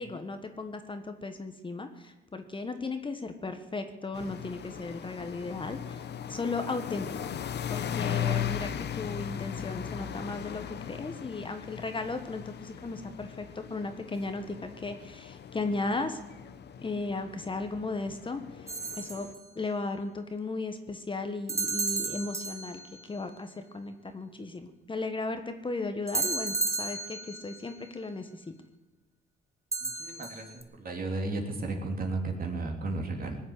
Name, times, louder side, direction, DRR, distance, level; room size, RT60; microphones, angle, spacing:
voice 1, 0.0-7.3 7.7-16.2 16.8-19.3 19.5-28.4, left 3 dB, 25° left, 7 dB, 1.4 m, -36 dB
sound 1, 4.1-19.3, left 9 dB, 60° left, 1.0 m, -38 dB
sound 2, 18.7-19.4 21.5-23.0 26.1-27.6 29.7-30.6, right 3 dB, 15° right, 1.3 m, -33 dB
voice 2, 29.8-33.4, right 3 dB, 45° right, 2 dB, 3.3 m, -34 dB
19.5 x 7.3 x 9.6 m, 1.2 s
cardioid pair, 90°, 20 cm